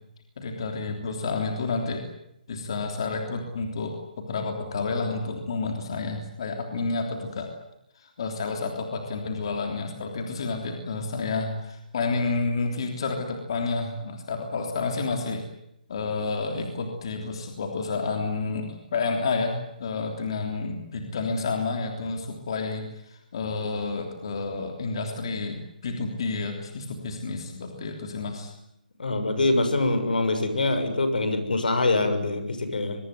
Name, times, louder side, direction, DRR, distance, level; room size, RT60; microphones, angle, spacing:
voice 1, 0.4-2.0 2.5-3.9 4.3-7.5 8.0-15.4 15.9-28.5, left 4 dB, 35° left, 3 dB, 3.3 m, -30 dB
voice 2, 29.0-33.0, left 2 dB, 70° left, 9 dB, 6.6 m, -24 dB
24.0 x 23.0 x 9.5 m, 0.82 s
hypercardioid pair, 180°, 5 cm